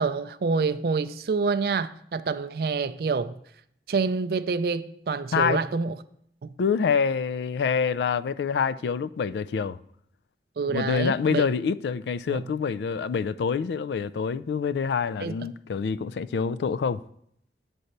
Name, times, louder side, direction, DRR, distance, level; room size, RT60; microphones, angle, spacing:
voice 1, 0.0-3.4 3.9-6.0 6.4-6.5 10.6-11.4 12.3-12.4 15.2-15.3, right 4 dB, 55° right, 0.4 m, -27 dB
voice 2, 6.6-9.8 10.7-17.0, left 6 dB, 75° left, 0.3 m, -26 dB
7.9 x 4.2 x 6.5 m
head